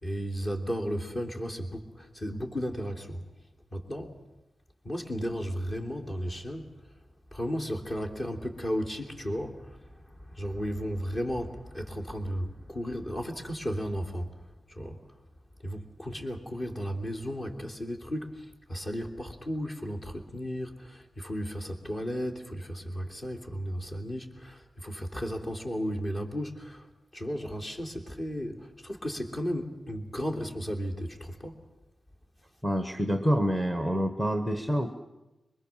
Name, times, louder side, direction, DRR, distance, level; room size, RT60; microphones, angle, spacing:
voice 1, 0.0-3.2 3.7-4.2 4.8-6.7 7.3-14.4 14.7-15.0 15.6-26.9 27.1-31.6, equal, 30° left, 2 dB, 3.3 m, -34 dB
voice 2, 32.6-35.1, equal, 5° left, 7 dB, 1.3 m, -27 dB
26.0 x 23.5 x 7.5 m, 1.0 s
wide cardioid pair, 175°, 0 cm